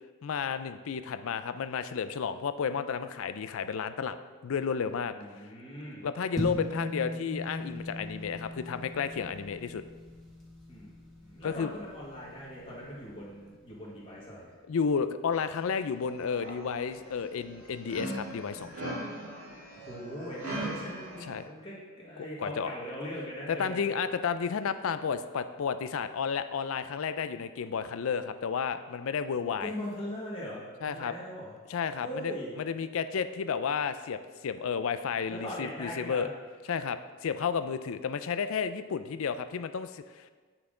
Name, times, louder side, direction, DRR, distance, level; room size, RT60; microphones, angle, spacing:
voice 1, 0.2-4.2 4.4-5.1 6.0-9.8 11.4-11.7 14.7-19.0 21.3-21.4 22.4-22.7 23.5-29.7 30.8-31.1 31.7-36.3 36.7-40.3, left 6 dB, 65° left, 11 dB, 0.4 m, -32 dB
voice 2, 5.1-6.0 10.7-10.9 11.2-14.5 19.7-23.8 29.6-31.5 32.0-32.5 35.3-36.3, equal, 25° left, -6 dB, 1.6 m, -40 dB
sound 1, 6.4-13.0, left 1 dB, 5° left, 1.5 m, -40 dB
sound 2, 15.3-15.7 16.0-21.4, right 1 dB, 75° right, 2.3 m, -40 dB
8.0 x 6.0 x 3.8 m, 1.4 s
head